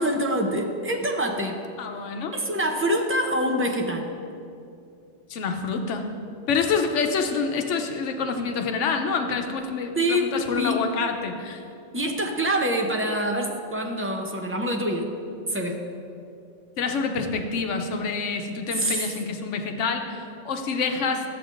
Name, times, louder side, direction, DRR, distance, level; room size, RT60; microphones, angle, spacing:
voice 1, 0.0-1.6 2.3-4.1 10.0-10.8 11.9-15.1 15.5-15.8 18.7-19.1, equal, 15° right, 2 dB, 0.4 m, -25 dB
voice 2, 1.8-2.3 5.3-6.1 6.5-11.6 16.8-21.2, left 5 dB, 90° left, 5 dB, 1.1 m, -27 dB
13.0 x 7.7 x 2.5 m, 2.6 s
omnidirectional pair, 1.2 m